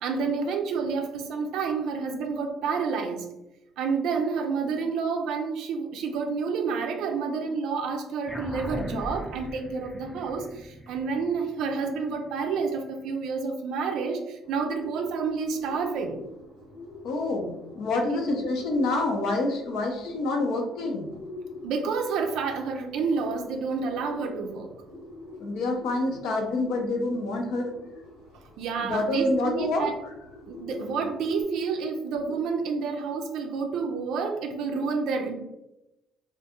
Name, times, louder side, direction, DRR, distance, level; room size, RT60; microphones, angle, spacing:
voice 1, 0.0-3.3 3.8-16.2 18.1-18.4 21.6-24.7 28.6-29.9 30.5-35.3, right 5 dB, 70° right, 3 dB, 0.4 m, -29 dB
sound 1, 8.3-13.0, equal, 5° left, 0.4 m, -39 dB
Bird, 14.4-31.4, left 2 dB, 90° left, 1.1 m, -45 dB
voice 2, 17.0-21.1 25.4-27.7 28.8-29.9, left 2 dB, 70° left, 1 dB, 0.6 m, -27 dB
2.4 x 2.3 x 2.8 m, 0.91 s
hypercardioid pair, 55°, 0 cm